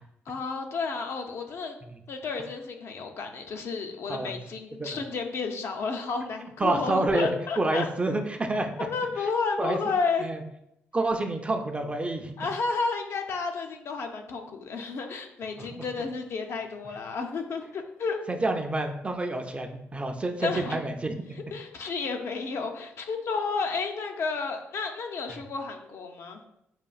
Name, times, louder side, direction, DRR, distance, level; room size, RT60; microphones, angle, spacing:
voice 1, 0.3-1.7 2.1-7.9 8.8-10.3 12.4-18.2 20.4-20.8 21.5-26.4, left 4 dB, 65° left, 4 dB, 0.5 m, -31 dB
voice 2, 6.6-7.3 7.6-8.7 9.6-9.9 10.2-10.4 10.9-12.3 15.6-15.8 18.3-21.1 25.3-25.4, right 2 dB, 25° right, 5 dB, 0.5 m, -28 dB
5.7 x 2.4 x 2.3 m, 0.81 s
supercardioid pair, 65°, 5 cm